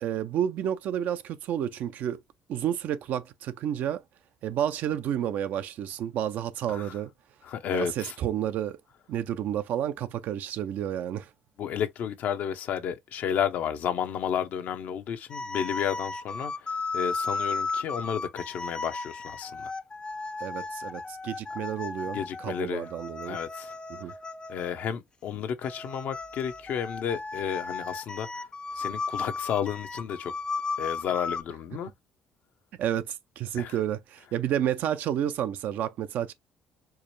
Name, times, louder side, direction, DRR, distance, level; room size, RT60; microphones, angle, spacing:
voice 1, 0.0-2.2 2.5-4.0 4.4-7.1 7.7-8.8 9.1-11.3 20.4-23.4 23.9-24.1 32.8-36.3, right 10 dB, 70° right, 0.5 m, -30 dB
voice 2, 7.4-8.1 11.6-19.7 22.1-22.9 23.3-23.8 24.0-24.2 24.5-28.4 28.7-30.3 30.8-31.9 33.5-33.7, left 8 dB, 65° left, 0.7 m, -32 dB
sound 1, 15.3-24.9 25.6-31.4, left 4 dB, 30° left, 0.6 m, -35 dB
4.6 x 2.2 x 3.1 m
supercardioid pair, 65°, 3 cm